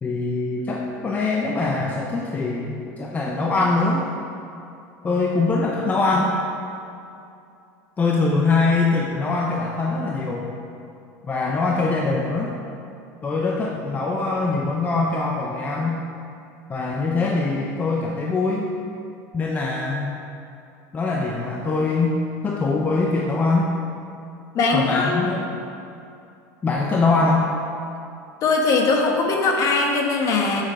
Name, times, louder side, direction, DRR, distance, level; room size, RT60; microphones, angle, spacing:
voice 1, 0.0-4.1 5.0-6.3 8.0-10.5 11.2-12.5 13.2-16.0 16.7-18.7 19.3-20.1 20.9-22.1 22.4-23.7 24.7-25.6 26.6-27.5, left 3 dB, 20° left, -2 dB, 0.7 m, -23 dB
voice 2, 24.5-25.1 28.4-30.6, left 3 dB, 40° left, 1 dB, 1.4 m, -20 dB
7.8 x 7.2 x 4.8 m, 2.6 s
supercardioid pair, 135°, 8 cm